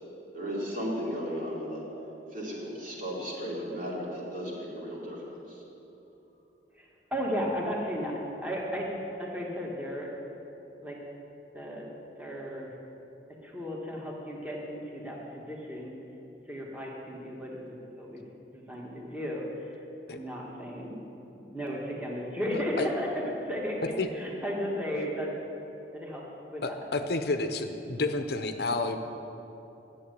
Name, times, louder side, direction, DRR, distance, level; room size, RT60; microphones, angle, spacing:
voice 1, 0.3-1.8 2.3-5.6, equal, 50° right, -4 dB, 2.9 m, -35 dB
voice 2, 6.7-10.1 10.8-11.0 11.5-11.9 12.2-12.7 13.4-15.9 16.5-18.2 18.5-19.8 20.1-21.0 21.5-25.3 25.9-26.2 26.5-26.8, equal, 10° right, -3 dB, 1.7 m, -34 dB
voice 3, 26.6-29.0, left 3 dB, 60° left, 7 dB, 0.7 m, -30 dB
11.5 x 7.7 x 8.3 m, 3.0 s
head